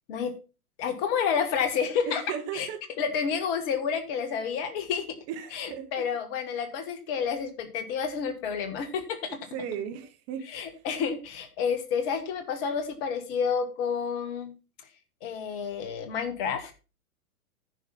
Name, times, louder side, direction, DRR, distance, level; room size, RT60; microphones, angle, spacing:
voice 1, 0.8-2.2 2.5-2.7 3.0-5.2 5.5-9.4 10.4-14.5 15.2-16.7, left 6 dB, 40° left, 9 dB, 1.8 m, -30 dB
voice 2, 2.1-2.8 5.3-6.1 9.5-10.4, right 8 dB, 30° right, 7 dB, 1.5 m, -35 dB
10.0 x 5.7 x 5.7 m, 0.32 s
figure-of-eight pair, 110°, 46 cm